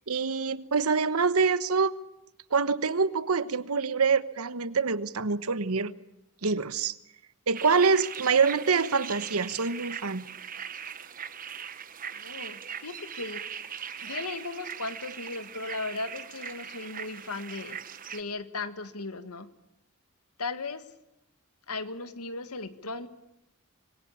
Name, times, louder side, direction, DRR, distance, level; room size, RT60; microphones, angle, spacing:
voice 1, 0.1-1.9 2.5-5.9 6.4-7.0 7.5-10.3, right 5 dB, 80° right, 14 dB, 1.1 m, -25 dB
sound 1, 7.5-18.2, right 8 dB, 40° right, 1.1 m, -40 dB
voice 2, 12.1-13.4 14.0-17.8 18.1-19.5 20.4-20.9 21.7-23.1, left 3 dB, 90° left, 11 dB, 1.7 m, -37 dB
26.0 x 21.5 x 8.7 m, 0.87 s
head